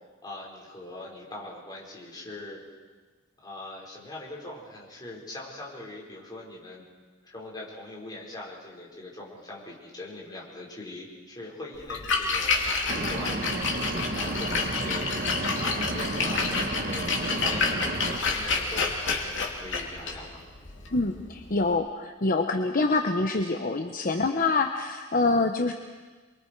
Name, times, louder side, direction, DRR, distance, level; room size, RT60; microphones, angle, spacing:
voice 1, 0.2-2.6 3.4-6.8 7.2-15.4 15.7-20.4, left 2 dB, 20° left, -4 dB, 5.2 m, -42 dB
Splash splatter, 11.8-21.7, left 4 dB, 65° left, 3.0 m, -29 dB
sound 1, 12.9-18.2, right 2 dB, 50° right, 1.2 m, -32 dB
voice 2, 20.9-25.7, left 3 dB, 45° left, 5 dB, 0.9 m, -26 dB
28.5 x 23.0 x 4.7 m, 1.4 s
head